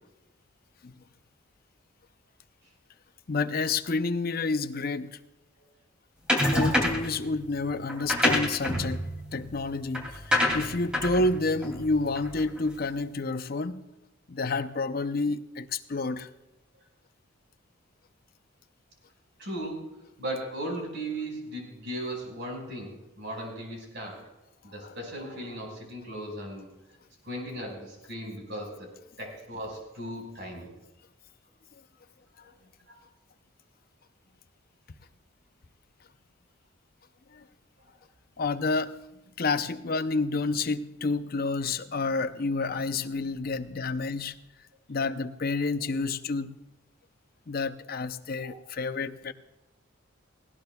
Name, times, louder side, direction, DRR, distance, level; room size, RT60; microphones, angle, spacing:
voice 1, 3.3-5.2 6.5-13.8 14.3-16.3 24.8-24.9 32.4-32.5 37.3-37.5 38.4-39.0 39.4-44.4 44.9-46.5 47.5-49.3, left 3 dB, 45° left, 10 dB, 0.6 m, -29 dB
sound 1, 6.3-7.1 7.9-12.6, left 1 dB, 5° right, 2.7 m, -27 dB
voice 2, 19.4-19.9 20.2-24.2 24.6-26.7 27.3-28.9 29.2-30.7 48.3-48.5, right 1 dB, 60° right, 0 dB, 5.1 m, -37 dB
18.5 x 17.5 x 2.3 m, 1.0 s
head